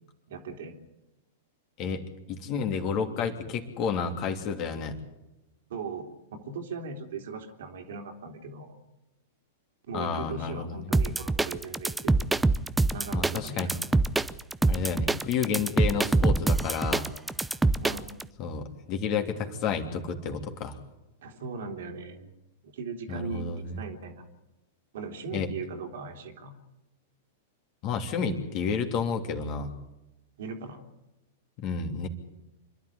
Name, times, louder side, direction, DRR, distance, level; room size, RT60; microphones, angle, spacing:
voice 1, 0.3-0.8 5.7-8.8 9.9-12.4 12.9-13.8 17.8-18.2 21.2-22.3 22.6-24.3 24.9-26.5 30.4-30.8, right 4 dB, 65° right, 4 dB, 3.1 m, -39 dB
voice 2, 2.3-5.0 9.9-10.9 13.1-13.7 14.7-17.0 18.4-20.8 23.1-23.8 25.3-25.5 27.8-29.7 31.6-32.1, left 5 dB, 45° left, 4 dB, 3.0 m, -30 dB
sound 1, 10.9-18.2, right 2 dB, 10° right, 0.7 m, -25 dB
26.5 x 12.0 x 10.0 m, 0.97 s
hypercardioid pair, 105°, 0 cm